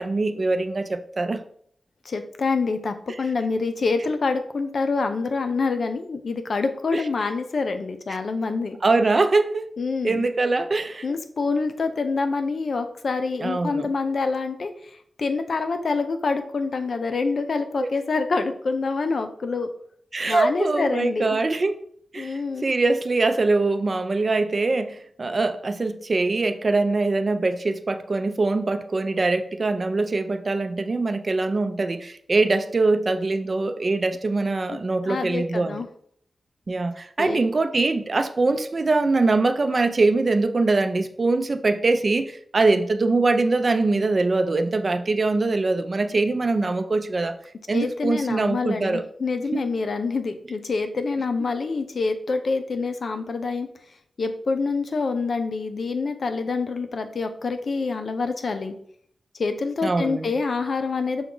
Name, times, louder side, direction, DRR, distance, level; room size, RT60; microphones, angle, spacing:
voice 1, 0.0-1.4 6.9-7.0 8.8-9.6 10.0-11.1 13.4-13.9 17.8-17.9 20.1-21.8 22.1-35.8 36.7-47.3 47.7-49.0 49.5-49.6 59.8-60.3, right 3 dB, 45° right, 0.4 m, -23 dB
voice 2, 2.0-8.8 9.8-10.3 11.0-14.9 15.2-19.7 20.3-21.4 22.2-22.7 34.7-35.9 37.2-37.4 47.7-53.7 54.2-58.7 59.4-61.2, left 4 dB, 65° left, 0.4 m, -26 dB
6.0 x 2.3 x 3.7 m
wide cardioid pair, 85°, 0 cm